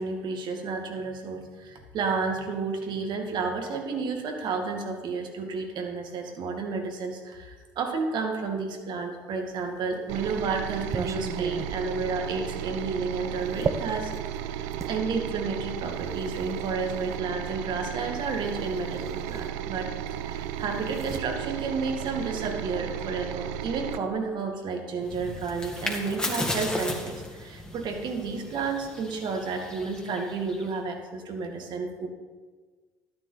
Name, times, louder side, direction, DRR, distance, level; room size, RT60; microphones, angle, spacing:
voice 1, 0.0-14.1 14.4-32.1, right 4 dB, 55° right, 3 dB, 2.2 m, -31 dB
sound 1, 9.6-15.0 15.9-17.2 18.5-18.6 18.9-20.0 20.3-22.5, right 6 dB, 35° right, 0.7 m, -37 dB
sound 2, 10.1-24.0, right 10 dB, 75° right, 0.5 m, -34 dB
sound 3, 25.0-30.8, left 1 dB, 10° left, 2.3 m, -35 dB
12.0 x 10.5 x 4.2 m, 1.4 s
hypercardioid pair, 65°, 9 cm